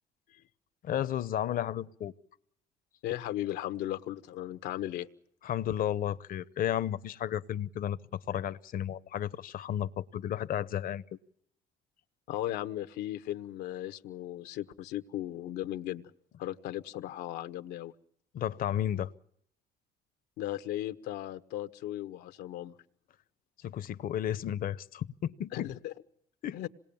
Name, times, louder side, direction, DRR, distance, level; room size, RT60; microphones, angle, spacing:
voice 1, 0.8-2.1 5.4-11.0 18.3-19.1 23.6-25.7 26.4-26.6, left 11 dB, 55° left, 16 dB, 0.9 m, -33 dB
voice 2, 3.0-5.1 12.3-16.1 16.4-17.9 20.4-22.7 25.5-25.9 26.5-26.7, left 13 dB, 85° left, 11 dB, 1.2 m, -36 dB
26.5 x 20.0 x 7.1 m, 0.70 s
cardioid pair, 110°, 17 cm